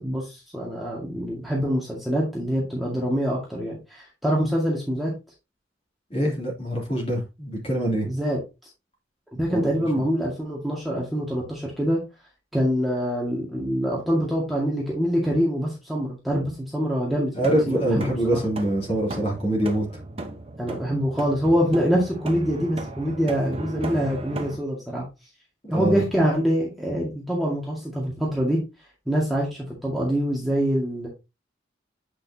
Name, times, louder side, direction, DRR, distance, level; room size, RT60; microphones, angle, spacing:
voice 1, 0.0-5.1 8.0-8.4 9.3-12.0 12.5-18.0 18.3-18.4 20.6-25.0 25.7-28.6 29.1-31.1, equal, ahead, -5 dB, 1.9 m, -25 dB
voice 2, 6.1-8.1 9.5-9.7 17.4-19.9 25.7-26.0, right 1 dB, 30° left, -2 dB, 2.9 m, -24 dB
sound 1, 17.4-24.6, right 2 dB, 30° right, 1.0 m, -36 dB
8.4 x 5.2 x 2.8 m, 0.26 s
head